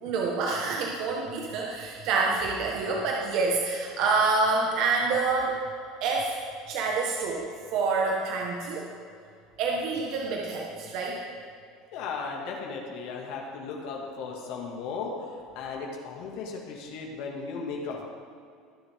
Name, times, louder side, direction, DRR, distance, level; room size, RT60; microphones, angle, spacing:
voice 1, 0.0-5.6 6.0-6.4 6.7-8.9 9.6-11.2, right 4 dB, 65° right, -1 dB, 1.4 m, -27 dB
voice 2, 11.9-18.0, left 4 dB, 70° left, 0 dB, 2.1 m, -36 dB
21.0 x 7.1 x 3.7 m, 2.3 s
supercardioid pair, 110°, 0 cm